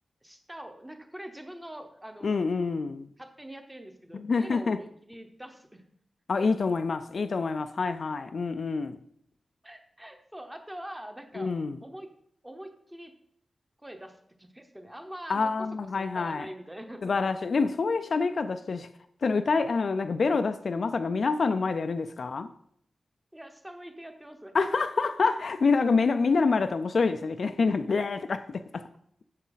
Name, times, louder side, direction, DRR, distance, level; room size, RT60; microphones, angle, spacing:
voice 1, 0.2-2.4 3.2-5.8 6.5-6.6 9.6-11.5 11.8-12.1 12.4-13.2 13.8-15.5 15.8-17.1 23.3-24.5, right 1 dB, 10° right, 0.9 m, -44 dB
voice 2, 2.2-3.1 4.1-4.8 6.3-9.0 11.3-11.8 15.3-16.5 17.0-18.9 19.2-22.5 24.5-28.8, left 4 dB, 55° left, 0.4 m, -27 dB
9.5 x 7.2 x 4.0 m
wide cardioid pair, 175°, 0 cm